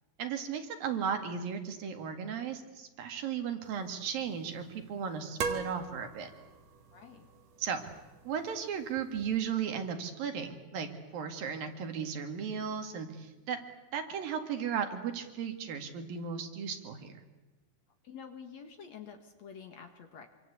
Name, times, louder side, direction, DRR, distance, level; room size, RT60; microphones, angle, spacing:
voice 1, 0.2-6.3 7.6-7.9 8.3-13.6 13.9-17.2, right 7 dB, 70° right, 6 dB, 3.8 m, -35 dB
sound 1, 3.6-9.5, right 5 dB, 50° right, 2.7 m, -43 dB
voice 2, 6.9-7.3 18.0-20.3, left 7 dB, 55° left, 6 dB, 2.6 m, -48 dB
26.5 x 25.0 x 8.4 m, 1.1 s
omnidirectional pair, 4.3 m